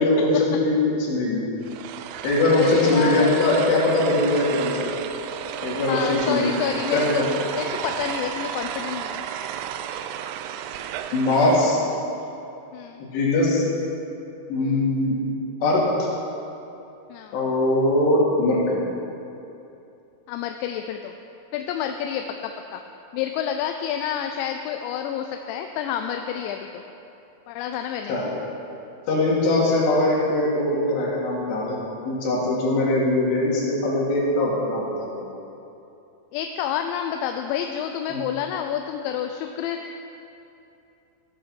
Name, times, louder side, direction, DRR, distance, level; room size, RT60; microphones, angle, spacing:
voice 1, 0.0-1.4 2.2-4.9 5.6-6.5 6.9-7.1 11.1-11.8 13.1-13.7 14.5-15.2 15.6-16.1 17.3-18.8 28.1-28.3 29.1-31.8 32.0-35.2 38.1-38.2, left 2 dB, 70° left, -5 dB, 4.5 m, -21 dB
sound 1, 1.6-12.0, right 9 dB, 90° right, 2.3 m, -32 dB
voice 2, 2.5-3.3 5.9-9.3 12.1-12.2 12.7-13.0 14.6-14.8 17.1-17.4 20.3-21.1 21.5-22.8 23.1-26.8 27.5-28.2 36.3-40.0, left 9 dB, 85° left, 5 dB, 2.8 m, -29 dB
16.0 x 8.7 x 6.0 m, 2.8 s
omnidirectional pair, 5.3 m